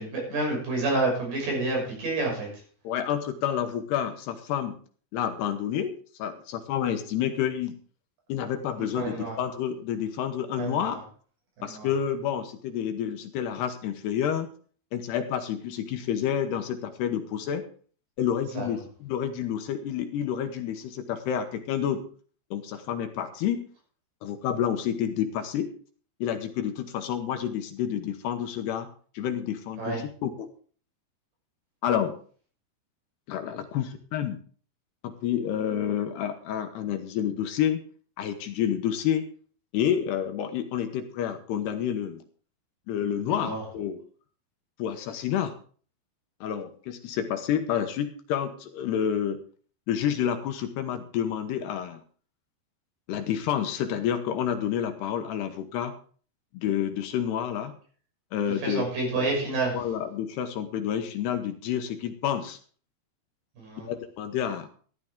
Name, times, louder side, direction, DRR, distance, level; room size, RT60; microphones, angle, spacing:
voice 1, 0.0-2.5 9.0-9.3 10.6-11.0 11.7-11.9 18.6-18.7 29.8-30.0 43.4-43.6 58.6-59.8 63.6-63.9, right 2 dB, 65° right, -1 dB, 8.2 m, -29 dB
voice 2, 2.8-4.8 5.1-5.9 6.2-7.8 8.3-11.0 11.6-14.5 14.9-17.6 18.2-22.0 22.5-23.7 24.2-25.7 26.2-28.9 29.1-30.5 31.8-32.2 33.3-34.4 35.0-37.8 38.2-39.3 39.7-42.2 42.9-44.0 44.8-45.5 46.4-49.4 49.9-52.0 53.1-55.9 56.5-57.7 58.3-58.9 59.7-62.6 63.9-64.7, left 9 dB, 75° left, 7 dB, 3.0 m, -29 dB
14.0 x 13.0 x 3.6 m, 0.43 s
omnidirectional pair, 5.1 m